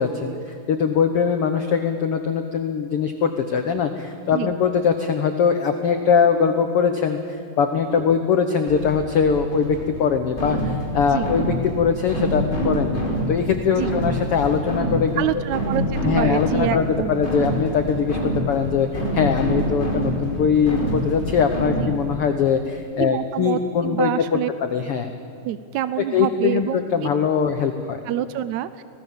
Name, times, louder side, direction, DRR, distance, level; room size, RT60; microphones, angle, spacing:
voice 1, 0.0-13.0 13.3-15.2 16.0-24.1 24.7-25.1 26.1-28.0, left 6 dB, 70° left, 6 dB, 1.3 m, -22 dB
sound 1, 8.7-22.2, equal, 15° left, 5.1 m, -26 dB
voice 2, 15.2-17.3 19.7-19.8 21.8-22.0 23.0-24.5 25.4-27.1 28.0-28.8, right 12 dB, 85° right, 14 dB, 1.6 m, -27 dB
26.0 x 18.5 x 7.3 m, 2.5 s
omnidirectional pair, 4.1 m